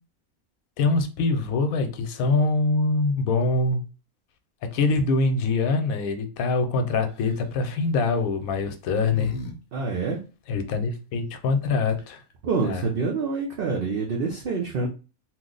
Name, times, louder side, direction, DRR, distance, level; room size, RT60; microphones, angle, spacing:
voice 1, 0.8-3.8 4.7-9.3 10.5-12.2 12.6-12.8, left 3 dB, 85° left, 1.0 m, -24 dB
sound 1, 7.1-7.5 8.5-9.5 9.8-9.9 11.6-11.7 11.9-12.3, equal, 65° left, 0.9 m, -39 dB
voice 2, 9.7-10.2 12.4-14.9, right 4 dB, 60° right, 0.6 m, -26 dB
2.9 x 2.1 x 3.8 m
omnidirectional pair, 1.5 m